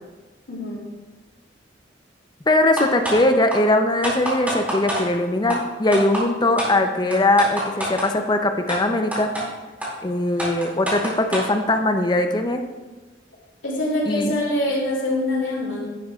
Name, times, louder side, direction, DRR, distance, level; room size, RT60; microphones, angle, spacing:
voice 1, 0.5-0.9 13.6-16.0, left 1 dB, 80° left, -3 dB, 2.6 m, -24 dB
voice 2, 2.5-9.3 10.0-12.6 14.1-14.4, left 2 dB, 20° left, 6 dB, 0.5 m, -20 dB
sound 1, 2.8-3.2 3.5-3.6 4.0-5.0 5.5-5.6 5.9-6.2 6.6-6.7 7.1-8.1 8.7-8.8 9.1-9.4 9.8-9.9 10.4-11.5, right 1 dB, 10° right, 2.4 m, -26 dB
10.5 x 9.2 x 2.4 m, 1.2 s
head